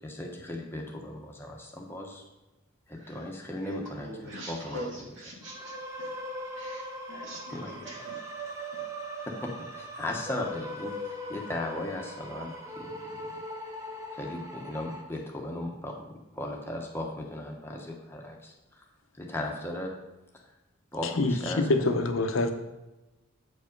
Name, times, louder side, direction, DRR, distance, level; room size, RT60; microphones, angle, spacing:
voice 1, 0.0-2.2 2.9-4.1 4.5-4.8 7.5-7.7 9.3-12.9 13.2-13.3 14.1-18.8 19.1-19.9 20.9-21.6, left 1 dB, 10° left, 0 dB, 1.0 m, -37 dB
voice 2, 2.9-6.1 6.5-8.9, equal, 65° right, -3 dB, 2.4 m, -44 dB
sound 1, 5.4-15.0, equal, 15° right, 0.9 m, -40 dB
voice 3, 21.0-22.5, left 2 dB, 80° left, 6 dB, 0.8 m, -26 dB
8.2 x 5.2 x 5.2 m, 1.1 s
head